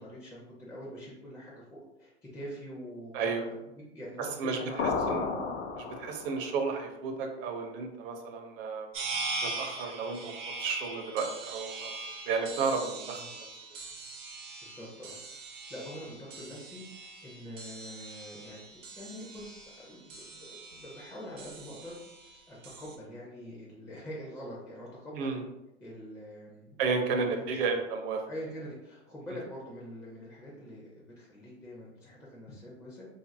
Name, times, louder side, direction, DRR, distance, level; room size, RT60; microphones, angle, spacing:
voice 1, 0.0-5.3 13.1-13.3 14.6-15.4 15.7-16.8 17.2-22.0 22.2-25.4 25.8-27.5 28.3-33.1, equal, 10° left, -5 dB, 0.4 m, -44 dB
voice 2, 3.1-3.5 4.2-4.6 5.1-5.2 5.8-8.9 9.4-11.9 12.3-13.4 25.1-25.4 26.8-28.2, right 4 dB, 50° right, 4 dB, 0.5 m, -32 dB
sound 1, 4.8-6.5, left 4 dB, 80° left, 0.6 m, -32 dB
sound 2, 8.9-23.0, right 3 dB, 90° right, 0.6 m, -42 dB
2.6 x 2.5 x 2.5 m, 0.92 s
hypercardioid pair, 115°, 37 cm